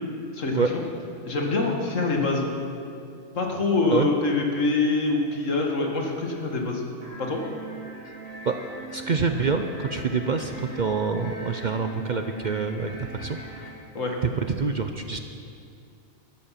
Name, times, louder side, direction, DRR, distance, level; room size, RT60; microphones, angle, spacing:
voice 1, 0.3-0.8 1.2-2.5 3.4-6.8 7.2-7.4 13.9-14.2, left 3 dB, 80° left, 1 dB, 2.1 m, -25 dB
sound 1, 7.0-13.7, right 3 dB, 70° right, 3.8 m, -40 dB
voice 2, 8.9-13.7 14.2-15.2, right 5 dB, 50° right, 6 dB, 0.6 m, -26 dB
13.0 x 13.0 x 5.8 m, 2.4 s
omnidirectional pair, 1.3 m